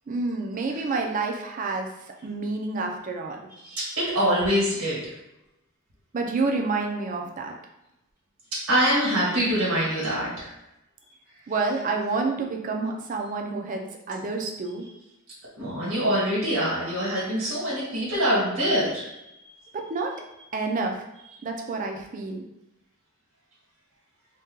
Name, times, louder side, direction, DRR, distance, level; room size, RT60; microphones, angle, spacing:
voice 1, 0.1-1.9 2.2-3.4 6.1-7.5 11.5-14.9 19.7-20.1 20.5-21.0 21.4-22.4, right 3 dB, 40° right, 2 dB, 0.4 m, -28 dB
voice 2, 3.7-5.0 8.7-10.5 15.6-19.1, equal, 85° right, -8 dB, 1.4 m, -24 dB
2.7 x 2.2 x 3.6 m, 0.89 s
head